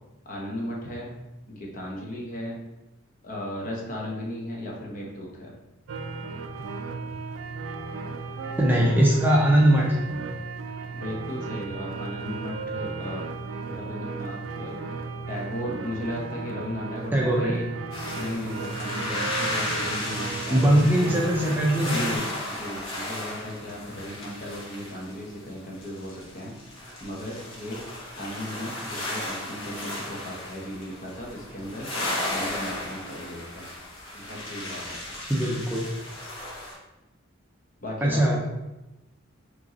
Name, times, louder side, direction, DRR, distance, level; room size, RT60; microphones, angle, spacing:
voice 1, 0.2-1.1 1.5-2.6 3.2-5.6 10.9-13.3 13.7-14.8 15.3-17.7 18.1-21.2 21.8-26.5 27.0-27.8 28.2-31.9 32.3-33.7 34.1-35.2 37.8-38.4, left 1 dB, 40° left, -2 dB, 0.9 m, -36 dB
sound 1, 5.9-22.2, right 4 dB, 70° right, 0.4 m, -35 dB
voice 2, 8.6-10.0 17.1-17.5 20.5-22.1 35.3-35.8 38.0-38.4, right 1 dB, 10° right, -3 dB, 0.5 m, -21 dB
sound 2, 17.9-36.7, left 1 dB, 70° left, 1.3 m, -35 dB
5.1 x 3.0 x 2.8 m, 0.98 s
head